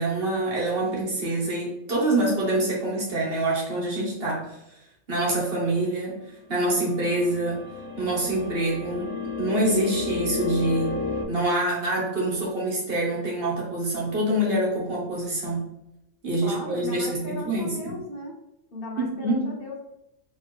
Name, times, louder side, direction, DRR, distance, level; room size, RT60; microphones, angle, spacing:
voice 1, 0.0-4.6 5.1-6.2 6.5-7.6 8.0-10.9 11.3-15.6 16.2-18.0 19.0-19.4, right 1 dB, 45° right, -3 dB, 1.7 m, -26 dB
sound 1, 6.7-11.2, left 4 dB, 80° left, 1.5 m, -32 dB
voice 2, 16.4-18.3 18.7-19.8, left 1 dB, 45° left, -2 dB, 1.3 m, -36 dB
4.5 x 3.5 x 3.2 m, 0.86 s
omnidirectional pair, 1.5 m